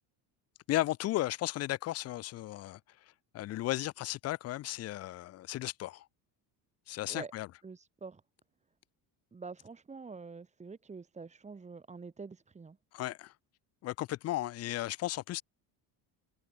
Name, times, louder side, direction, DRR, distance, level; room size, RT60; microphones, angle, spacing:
voice 1, 0.7-2.8 3.3-6.1 6.9-7.5 12.9-13.3 13.8-15.4, left 15 dB, 35° left, 0.5 m, -35 dB
voice 2, 7.6-8.2 9.3-12.8, right 4 dB, 15° right, 3.3 m, -46 dB
cardioid pair, 170°, 43 cm